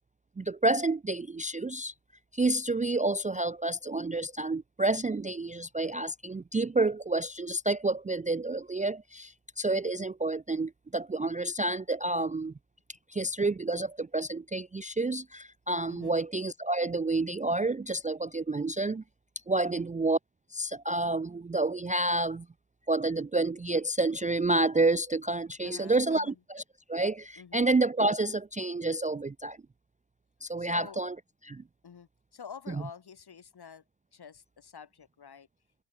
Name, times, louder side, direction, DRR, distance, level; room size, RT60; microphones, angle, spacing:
voice 1, 0.4-1.9 2.3-12.5 13.1-19.0 19.5-20.2 20.5-22.5 22.9-26.6 26.9-29.6 30.4-31.1 31.4-31.6, right 2 dB, 20° right, 0.4 m, -29 dB
voice 2, 15.9-16.2 19.6-19.9 25.6-26.4 27.4-27.7 30.6-31.0 31.8-33.8 34.1-35.5, left 7 dB, 60° left, 3.8 m, -48 dB
wide cardioid pair, 165°, 43 cm